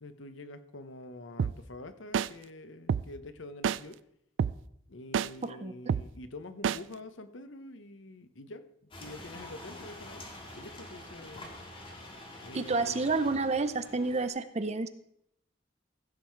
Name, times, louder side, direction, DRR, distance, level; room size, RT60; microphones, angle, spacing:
voice 1, 0.0-4.0 4.9-8.7 8.9-10.3 10.5-11.5 12.4-13.3, left 2 dB, 70° left, 11 dB, 0.9 m, -46 dB
sound 1, 1.4-1.5 2.1-2.3 2.9-3.0 3.6-3.8 4.4-4.5 5.1-5.3 5.9-6.0 6.6-6.8, right 7 dB, 65° right, 0.3 m, -27 dB
voice 2, 5.4-5.7 12.5-14.9, right 3 dB, 35° right, 11 dB, 0.7 m, -30 dB
sound 2, 8.9-14.3, left 1 dB, 25° left, 2.0 m, -46 dB
15.0 x 7.6 x 4.6 m, 0.73 s
head